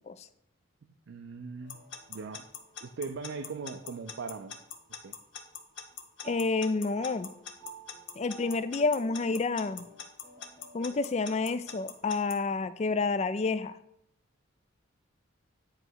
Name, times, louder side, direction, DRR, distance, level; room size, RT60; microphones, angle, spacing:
voice 1, 0.8-1.8 2.1-2.5 2.8-4.6 5.0-5.2, right 4 dB, 60° right, 7 dB, 0.4 m, -40 dB
sound 1, 1.6-5.1 5.4-12.8, right 4 dB, 10° left, 1.1 m, -54 dB
Alarm / Clock, 1.7-12.4, left 8 dB, 60° left, 0.8 m, -42 dB
voice 2, 6.2-7.3 8.2-9.8 10.7-13.8, left 3 dB, 30° left, 14 dB, 0.3 m, -29 dB
9.0 x 3.3 x 6.2 m, 0.77 s
head